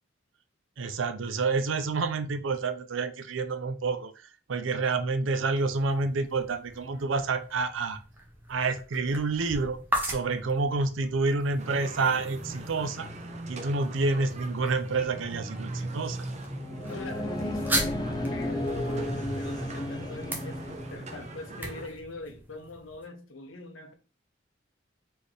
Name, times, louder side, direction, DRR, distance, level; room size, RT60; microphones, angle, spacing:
voice 1, 0.8-8.0 8.5-13.1 13.5-16.3, right 3 dB, 70° right, 0.5 m, -28 dB
sound 1, 5.2-23.1, right 1 dB, 10° right, 1.0 m, -39 dB
sound 2, 11.6-21.9, right 1 dB, 35° right, 0.7 m, -39 dB
sound 3, 16.6-21.2, left 1 dB, 20° left, 0.5 m, -33 dB
voice 2, 16.9-23.9, left 2 dB, 85° left, 0.9 m, -42 dB
4.3 x 3.4 x 3.3 m
head